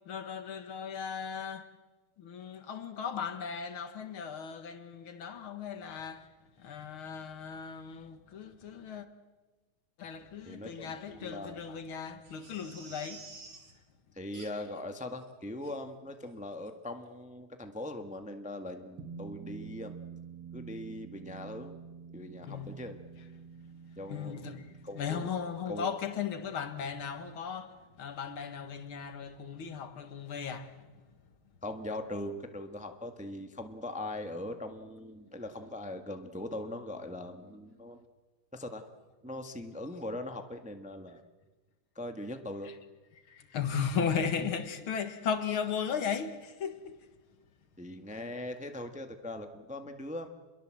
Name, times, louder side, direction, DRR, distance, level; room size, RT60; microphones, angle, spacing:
voice 1, 0.1-1.7 2.2-6.3 6.6-9.1 10.0-13.3 22.4-22.8 24.1-30.9 42.7-42.8 43.1-47.1, left 6 dB, 75° left, 2.4 m, -36 dB
voice 2, 10.4-11.6 14.1-19.9 20.5-21.7 22.1-23.0 23.9-24.4 24.8-25.3 25.7-25.9 31.6-38.0 38.5-38.8 39.2-41.2 41.9-42.7 47.8-50.3, left 1 dB, 5° right, 1.2 m, -40 dB
Crying sobbing, 12.2-13.7 14.3-14.8 15.2-15.3 15.6-15.8 16.2-16.4 16.6-16.7, right 4 dB, 50° right, 3.3 m, -51 dB
sound 1, 19.0-29.7, right 6 dB, 70° right, 2.4 m, -50 dB
28.5 x 22.5 x 7.7 m
omnidirectional pair, 2.3 m